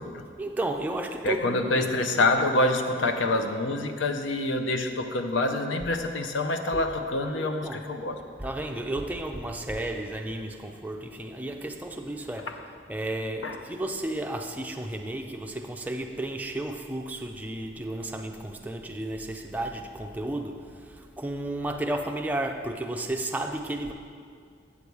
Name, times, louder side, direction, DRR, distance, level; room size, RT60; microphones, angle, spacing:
voice 1, 0.4-1.9 6.7-7.9 8.4-12.5 12.9-20.6 21.0-23.9, right 1 dB, 10° right, 3 dB, 0.4 m, -33 dB
voice 2, 1.2-8.2 12.5-12.6 13.4-13.6, left 2 dB, 85° left, 6 dB, 0.6 m, -26 dB
8.3 x 6.8 x 4.6 m, 2.3 s
head